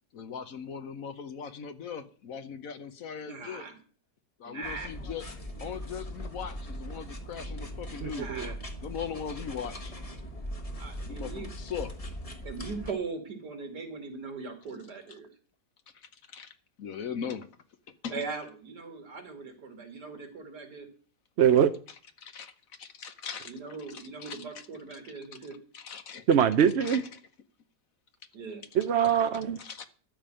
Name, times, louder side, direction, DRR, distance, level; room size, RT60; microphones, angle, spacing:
voice 1, 0.1-3.7 4.4-5.3 5.6-8.5 8.8-9.9 11.0-11.9 15.9-17.5 18.0-18.2 22.2-22.5 22.8-23.5 23.9-24.4 25.0-25.1 25.7-26.3 26.8-27.2 29.6-29.8, left 7 dB, 60° left, 10 dB, 1.2 m, -39 dB
voice 2, 3.2-3.8 4.4-4.9 8.1-8.6 10.8-11.5 12.4-15.3 18.1-20.9 23.5-25.6 28.3-28.6, right 4 dB, 75° right, 5 dB, 2.9 m, -40 dB
sound 1, 4.6-12.9, equal, 25° left, 1.3 m, -40 dB
voice 3, 8.0-8.5 21.4-21.7 26.3-27.0 28.7-29.6, right 8 dB, 55° right, 9 dB, 0.7 m, -23 dB
12.5 x 5.2 x 8.8 m, 0.42 s
omnidirectional pair, 1.8 m